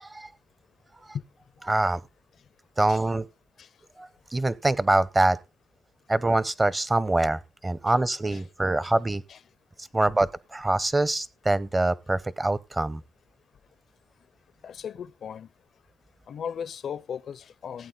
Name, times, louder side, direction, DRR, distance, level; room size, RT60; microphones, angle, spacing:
voice 1, 1.7-2.0 2.8-3.3 4.0-5.4 6.1-9.2 9.9-13.0, right 2 dB, 20° right, 0.8 m, -24 dB
voice 2, 14.6-15.5 16.3-17.9, left 7 dB, 60° left, 0.5 m, -37 dB
16.0 x 8.6 x 3.9 m
cardioid pair, 85°, 0 cm